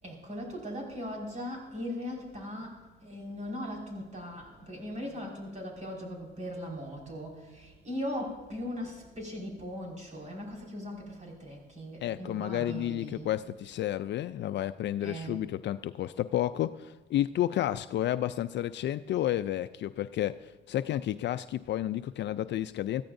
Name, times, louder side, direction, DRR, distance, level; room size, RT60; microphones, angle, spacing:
voice 1, 0.0-13.4 15.0-15.4, equal, 35° right, -1 dB, 5.4 m, -39 dB
voice 2, 12.0-23.0, left 12 dB, 65° left, 12 dB, 0.4 m, -31 dB
21.5 x 14.5 x 2.6 m, 1.4 s
cardioid pair, 90°, 20 cm